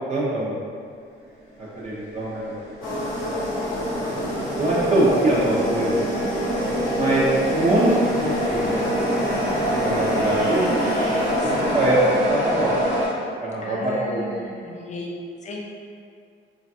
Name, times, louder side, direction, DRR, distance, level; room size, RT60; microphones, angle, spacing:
voice 1, 0.1-0.6 1.8-2.6 4.0-4.2 4.6-6.0 7.0-7.2 7.5-8.7 9.7-10.7 11.4-12.0 12.3-12.7 13.4-14.2, right 1 dB, 35° right, -7 dB, 0.6 m, -23 dB
sound 1, 1.5-13.1, equal, 70° right, 1.0 m, -26 dB
sound 2, 2.8-12.6, equal, 85° left, 0.8 m, -29 dB
voice 2, 11.4-11.8 13.6-15.1 15.4-15.6, left 3 dB, 35° left, -2 dB, 0.5 m, -35 dB
3.1 x 2.3 x 2.7 m, 2.3 s
cardioid pair, 90°, 20 cm